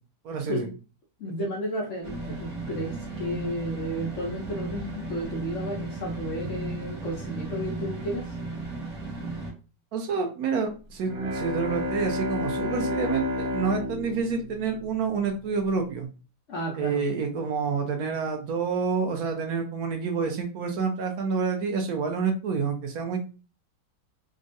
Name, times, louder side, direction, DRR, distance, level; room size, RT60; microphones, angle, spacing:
voice 1, 0.2-0.7 1.4-1.5 9.9-16.1 16.8-23.2, right 5 dB, 65° right, 4 dB, 1.0 m, -28 dB
voice 2, 1.2-8.3 16.5-17.0, equal, 80° left, -2 dB, 0.6 m, -33 dB
sound 1, 2.0-9.5, right 2 dB, 45° right, 1.2 m, -35 dB
Bowed string instrument, 11.0-15.6, left 1 dB, 80° right, 1.6 m, -31 dB
3.5 x 2.1 x 2.6 m, 0.34 s
omnidirectional pair, 2.0 m